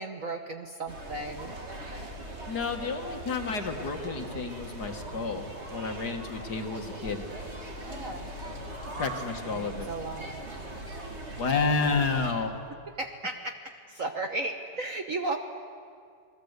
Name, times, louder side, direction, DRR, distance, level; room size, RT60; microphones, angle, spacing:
voice 1, 0.0-1.5 7.8-8.4 9.4-10.4 13.0-15.4, right 2 dB, 45° right, 5 dB, 1.3 m, -35 dB
sound 1, 0.9-12.3, right 1 dB, 30° right, 2.8 m, -40 dB
voice 2, 2.5-7.3 8.9-9.9 11.4-12.6, left 4 dB, 50° left, 5 dB, 2.0 m, -30 dB
28.5 x 20.0 x 8.1 m, 2.2 s
omnidirectional pair, 2.4 m